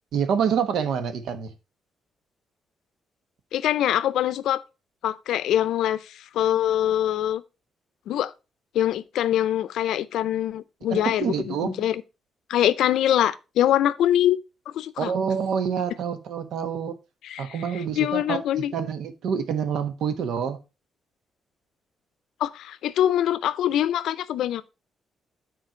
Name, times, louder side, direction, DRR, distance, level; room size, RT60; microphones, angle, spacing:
voice 1, 0.1-1.5 10.9-11.9 15.0-16.9 17.4-20.6, right 7 dB, 75° right, 1.1 m, -27 dB
voice 2, 3.5-4.6 5.0-7.4 8.1-8.3 8.7-12.0 12.5-14.4 14.7-15.1 17.2-17.6 17.9-18.7 22.4-24.6, left 11 dB, 85° left, 0.5 m, -24 dB
9.2 x 4.4 x 4.4 m
cardioid pair, 155°, 0 cm